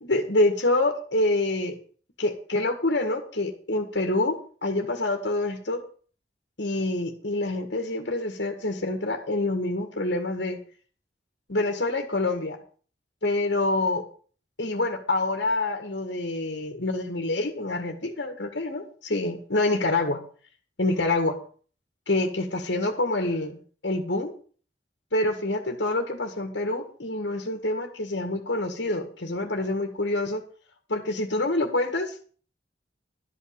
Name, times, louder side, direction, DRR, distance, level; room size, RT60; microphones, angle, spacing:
voice 1, 0.0-1.8 2.2-5.8 6.6-10.6 11.5-12.6 13.2-14.0 14.6-20.2 20.8-21.4 22.1-24.3 25.1-30.4 30.9-32.2, left 2 dB, 90° left, 4 dB, 1.9 m, -26 dB
12.5 x 5.6 x 8.8 m, 0.43 s
head